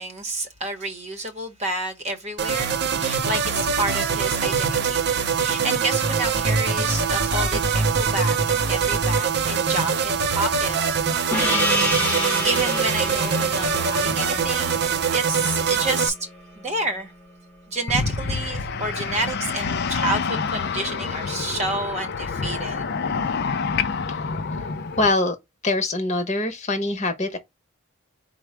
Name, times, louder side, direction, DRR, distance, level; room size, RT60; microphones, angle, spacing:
voice 1, 0.0-10.8 11.3-14.8 15.1-16.1 16.6-17.1 17.7-22.9, right 2 dB, 30° right, 0.9 m, -29 dB
sound 1, 2.4-16.1, right 5 dB, 50° right, 0.6 m, -23 dB
Gong, 11.3-16.4, left 1 dB, 5° left, 1.0 m, -28 dB
sound 2, 17.9-25.1, left 5 dB, 45° left, 0.4 m, -27 dB
voice 2, 25.0-25.4 25.6-27.4, left 2 dB, 30° left, 1.0 m, -23 dB
4.5 x 2.1 x 4.6 m
head